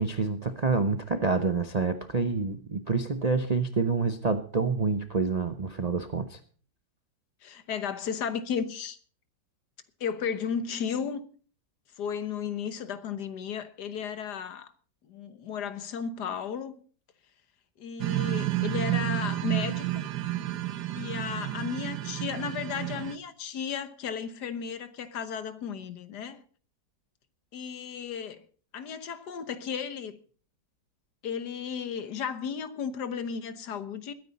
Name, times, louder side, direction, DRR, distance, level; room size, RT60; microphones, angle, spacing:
voice 1, 0.0-6.4, right 4 dB, 40° right, 0.5 m, -27 dB
voice 2, 7.4-9.0 10.0-11.2 12.0-14.7 15.0-16.8 17.8-20.0 21.0-26.4 27.5-28.4 28.7-30.2 31.2-34.1, left 7 dB, 70° left, 1.6 m, -34 dB
sound 1, 18.0-23.2, right 15 dB, 70° right, 1.4 m, -30 dB
21.0 x 9.6 x 4.2 m
omnidirectional pair, 1.9 m